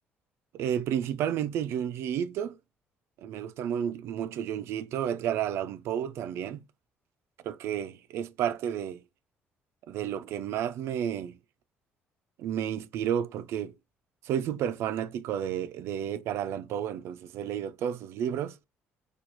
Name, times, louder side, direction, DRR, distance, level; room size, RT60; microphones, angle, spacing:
voice 1, 0.5-2.6 3.2-6.6 7.4-9.0 9.9-11.4 12.4-13.7 14.2-18.6, right 9 dB, 75° right, 0.4 m, -31 dB
4.4 x 2.4 x 2.5 m
cardioid pair, 110°, 4 cm